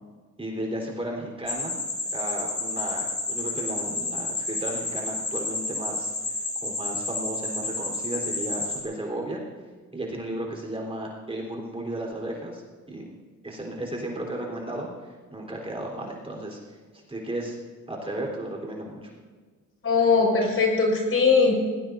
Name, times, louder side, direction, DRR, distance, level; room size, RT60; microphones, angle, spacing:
voice 1, 0.4-1.8 2.1-9.4 9.9-12.6 12.9-13.2 13.4-16.6 16.9-17.6 17.9-19.1, right 1 dB, 20° right, -1 dB, 3.8 m, -34 dB
sound 1, 1.5-8.8, left 2 dB, 25° left, 4.1 m, -30 dB
voice 2, 19.8-21.5, left 4 dB, 45° left, 0 dB, 5.3 m, -20 dB
20.5 x 19.0 x 2.7 m, 1.5 s
cardioid pair, 90°, 30 cm